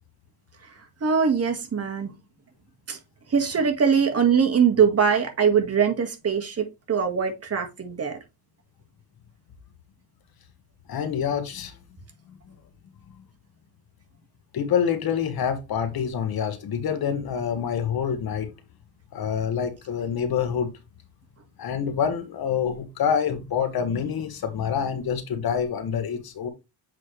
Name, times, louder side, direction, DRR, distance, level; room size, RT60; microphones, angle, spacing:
voice 1, 1.0-2.1 2.9-3.0 3.3-8.2, right 6 dB, 35° right, 1.8 m, -22 dB
voice 2, 10.9-11.7 14.5-18.5 19.1-20.7 21.6-26.5, left 7 dB, 60° left, 1.5 m, -26 dB
7.6 x 4.3 x 3.3 m
cardioid pair, 110°, 41 cm